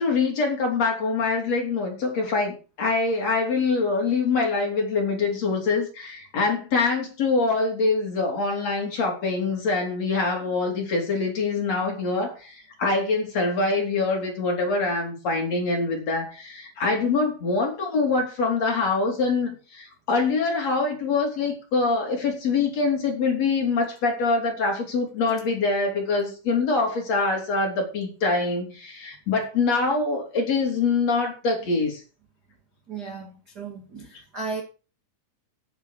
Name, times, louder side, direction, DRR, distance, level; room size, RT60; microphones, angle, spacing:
voice 1, 0.0-32.0, left 3 dB, 45° left, 4.1 m, -24 dB
voice 2, 32.9-34.6, right 4 dB, 40° right, 1.5 m, -35 dB
9.6 x 7.9 x 6.6 m
omnidirectional pair, 4.4 m